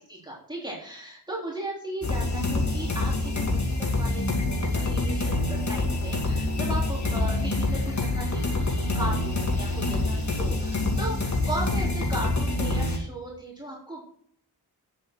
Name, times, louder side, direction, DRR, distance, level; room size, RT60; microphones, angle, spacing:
voice 1, 0.1-3.5 3.8-14.0, right 1 dB, 10° right, -5 dB, 3.4 m, -36 dB
sound 1, 2.0-13.0, left 2 dB, 50° left, 2.7 m, -26 dB
9.5 x 7.7 x 4.5 m, 0.62 s
wide cardioid pair, 85°, 37 cm